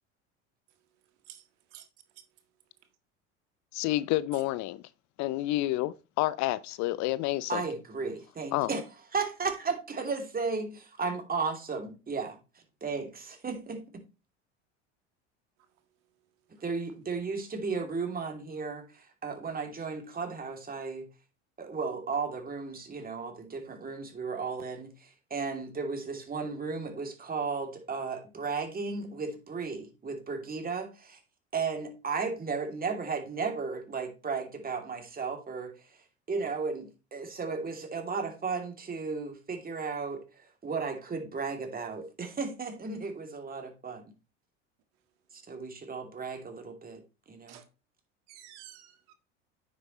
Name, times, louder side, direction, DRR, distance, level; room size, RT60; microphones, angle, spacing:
voice 1, 1.2-1.9 2.1-2.2 47.5-47.6 48.3-49.1, right 13 dB, 65° right, 1.7 m, -51 dB
voice 2, 3.7-4.8 5.2-7.6 8.5-8.7, left 16 dB, 50° left, 0.6 m, -29 dB
voice 3, 7.5-8.8 9.1-13.1 13.4-13.8 16.6-21.1 21.6-31.2 31.5-36.0 36.3-44.1 45.3-47.0 47.3-47.6, right 4 dB, 25° right, 2.9 m, -35 dB
9.6 x 7.5 x 3.1 m
hypercardioid pair, 75°, 36 cm